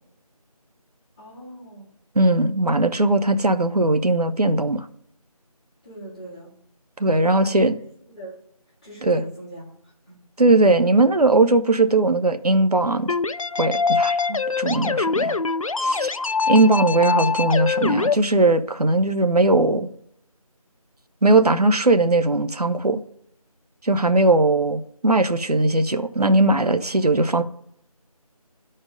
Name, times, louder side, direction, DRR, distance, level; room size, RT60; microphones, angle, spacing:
voice 1, 1.2-1.9 5.8-6.5 7.3-7.6 8.1-8.4 8.8-10.2, right 1 dB, 10° left, -9 dB, 2.0 m, -40 dB
voice 2, 2.2-4.9 7.0-7.7 9.0-9.2 10.4-13.1 13.6-15.4 15.8-16.1 16.5-19.9 21.2-23.0 23.8-27.4, right 2 dB, 90° right, 9 dB, 0.8 m, -19 dB
sound 1, 13.1-18.1, left 4 dB, 60° left, 0.4 m, -23 dB
11.5 x 4.4 x 5.1 m, 0.71 s
figure-of-eight pair, 170°, 19 cm